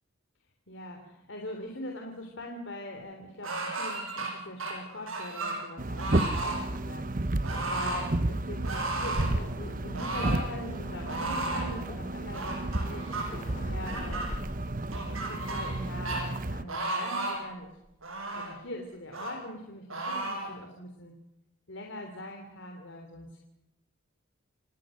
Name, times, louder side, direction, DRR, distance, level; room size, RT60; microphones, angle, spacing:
voice 1, 0.7-7.3 7.7-14.4 14.9-17.7 18.3-21.1 21.7-23.4, left 1 dB, 65° left, 2 dB, 3.4 m, -42 dB
sound 1, 3.4-4.3 4.6-5.6 6.0-6.6 7.4-8.0 8.6-9.3 9.9-10.5 11.1-11.7 12.3-13.2 13.9-14.3 14.9-15.8 16.1-16.2 16.7-17.5 18.0-18.5 19.1-19.3 19.9-20.5, right 2 dB, 90° right, 7.4 m, -34 dB
sound 2, 5.8-16.6, right 2 dB, 40° right, 1.0 m, -32 dB
Waves surf, 9.1-14.4, left 1 dB, 35° left, 3.9 m, -42 dB
29.0 x 18.5 x 6.5 m, 0.91 s
head